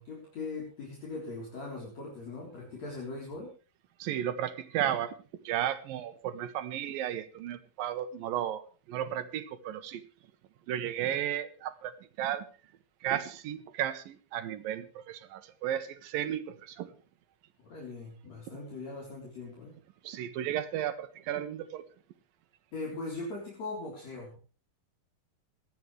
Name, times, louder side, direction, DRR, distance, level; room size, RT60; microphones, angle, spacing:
voice 1, 0.0-3.5 17.6-19.7 22.7-24.4, left 3 dB, 50° left, -3 dB, 4.8 m, -40 dB
voice 2, 4.0-5.2 5.4-10.0 10.7-12.5 13.0-16.9 20.0-21.8, right 11 dB, 80° right, 10 dB, 2.7 m, -34 dB
26.5 x 9.5 x 3.3 m, 0.36 s
omnidirectional pair, 4.2 m